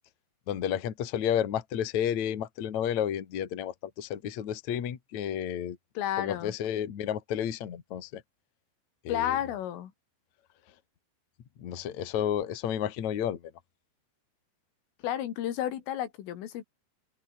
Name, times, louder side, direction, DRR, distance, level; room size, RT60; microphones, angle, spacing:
voice 1, 0.5-5.8 6.2-8.2 9.0-9.4 11.6-13.4, left 9 dB, 45° left, 2.7 m, -31 dB
voice 2, 6.0-6.5 9.1-9.9 15.0-16.6, left 11 dB, 75° left, 4.7 m, -32 dB
open air
omnidirectional pair, 5.9 m